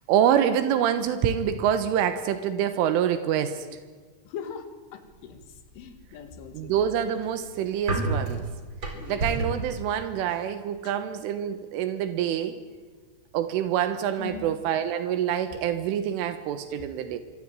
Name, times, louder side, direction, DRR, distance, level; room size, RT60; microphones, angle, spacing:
voice 1, 0.1-3.7 6.5-8.5 9.1-12.6 13.3-17.2, right 9 dB, 80° right, 10 dB, 3.8 m, -26 dB
voice 2, 4.2-6.9 8.9-9.2 10.8-11.0 14.2-14.5, left 7 dB, 75° left, 8 dB, 4.7 m, -41 dB
sound 1, 6.5-9.7, right 2 dB, 25° right, 4.2 m, -30 dB
26.5 x 23.5 x 9.0 m, 1.5 s
omnidirectional pair, 5.6 m